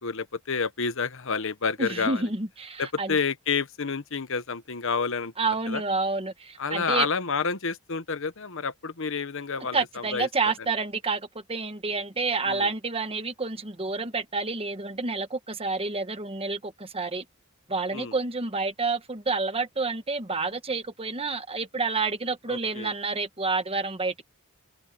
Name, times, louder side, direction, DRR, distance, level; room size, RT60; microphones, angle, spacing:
voice 1, 0.0-2.2 2.8-5.3 5.7-5.8 6.6-10.5 12.4-12.7 17.9-18.1 22.5-22.9, left 5 dB, 65° left, 1.1 m, -29 dB
voice 2, 1.8-3.2 5.4-7.1 9.7-17.2 17.7-24.2, right 3 dB, 25° right, 1.4 m, -29 dB
head